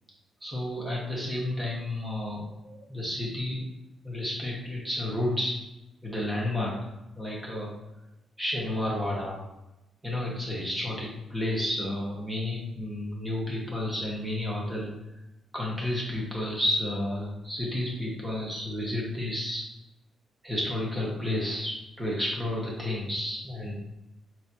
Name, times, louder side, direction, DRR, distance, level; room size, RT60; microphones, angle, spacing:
voice 1, 0.4-3.6 4.0-5.6 6.0-6.8 7.2-7.7 8.4-9.4 10.0-14.9 15.5-19.6 20.4-23.8, left 1 dB, 10° right, -4 dB, 1.1 m, -31 dB
4.6 x 3.2 x 2.7 m, 0.93 s
wide cardioid pair, 175°, 0 cm